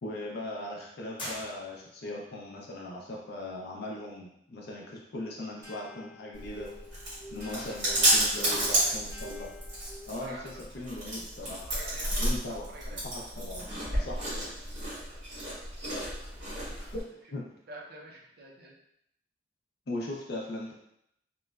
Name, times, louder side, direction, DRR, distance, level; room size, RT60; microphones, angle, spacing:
voice 1, 0.0-6.7 7.3-9.5 10.1-11.6 12.2-14.5 16.6-17.0 17.3-17.4 19.9-20.7, left 1 dB, 60° left, -2 dB, 0.5 m, -39 dB
sound 1, 1.2-2.2, left 1 dB, 30° left, 0.9 m, -41 dB
sound 2, 5.6-10.4, left 2 dB, 15° right, 0.6 m, -49 dB
Chewing mastication, 6.3-17.0, right 1 dB, 85° right, 1.4 m, -31 dB
voice 2, 7.7-8.1 8.4-9.0 10.1-10.6 11.7-13.0 17.7-18.8, right 1 dB, 60° right, 0 dB, 0.5 m, -47 dB
2.9 x 2.1 x 2.3 m, 0.76 s
head